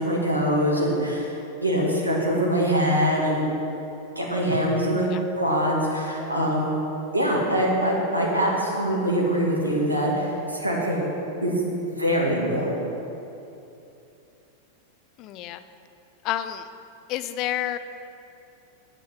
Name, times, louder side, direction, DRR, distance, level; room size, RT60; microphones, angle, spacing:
voice 1, 0.0-1.3 1.6-3.5 4.2-6.7 7.1-11.1 11.4-11.6 12.0-12.9, equal, 85° right, -3 dB, 2.1 m, -23 dB
voice 2, 15.2-15.6 16.2-16.6 17.1-17.8, left 12 dB, 40° left, 11 dB, 0.5 m, -29 dB
9.2 x 8.8 x 6.2 m, 2.8 s
figure-of-eight pair, 90°, 0 cm